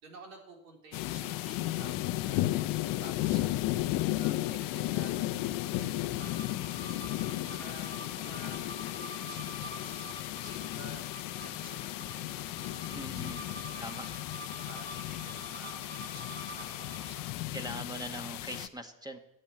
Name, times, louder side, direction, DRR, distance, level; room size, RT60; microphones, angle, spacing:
voice 1, 0.0-3.8 4.2-18.0, right 3 dB, 75° right, 1 dB, 3.8 m, -53 dB
sound 1, 0.9-18.7, left 16 dB, 55° left, 0.8 m, -34 dB
sound 2, 4.6-17.3, right 3 dB, 30° right, 4.2 m, -48 dB
voice 2, 12.9-13.4 13.8-14.1 17.5-19.2, right 1 dB, 10° right, 6 dB, 1.6 m, -41 dB
12.5 x 7.8 x 8.6 m, 0.84 s
hypercardioid pair, 85°, 40 cm